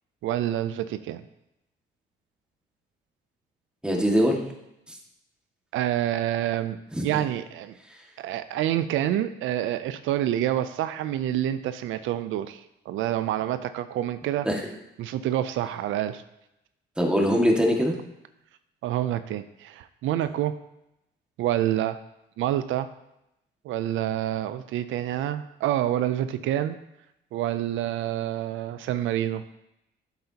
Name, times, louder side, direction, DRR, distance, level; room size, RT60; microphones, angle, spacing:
voice 1, 0.2-1.2 5.7-6.8 7.0-7.7 8.2-14.5 15.0-16.2 18.8-20.5 21.4-22.0 22.4-22.9 23.6-26.8 27.3-29.4, right 12 dB, 85° right, 12 dB, 0.5 m, -27 dB
voice 2, 3.8-4.4 4.9-5.0 6.9-7.0 14.4-14.6 17.0-17.9, equal, 5° right, 0 dB, 1.8 m, -22 dB
11.0 x 7.8 x 2.8 m, 0.85 s
cardioid pair, 90°, 20 cm